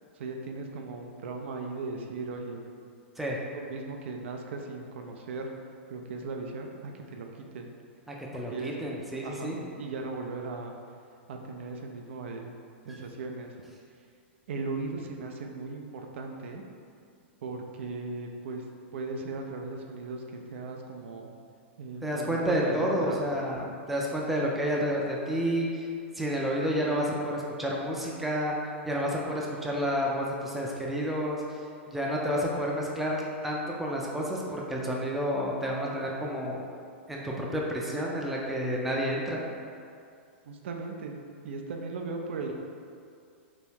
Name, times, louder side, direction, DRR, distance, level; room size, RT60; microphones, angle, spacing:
voice 1, 0.1-2.6 3.5-5.5 5.9-7.7 8.3-8.8 9.2-10.8 11.3-12.5 12.8-13.5 14.5-16.6 17.4-18.6 18.9-21.4 21.8-23.2 40.5-42.5, right 3 dB, 70° right, 2 dB, 0.4 m, -37 dB
voice 2, 8.1-9.6 22.0-25.9 26.2-28.6 28.9-31.4 31.9-36.6 37.1-39.4, equal, ahead, -3 dB, 0.4 m, -30 dB
2.9 x 2.2 x 3.4 m, 2.3 s
hypercardioid pair, 125°, 7 cm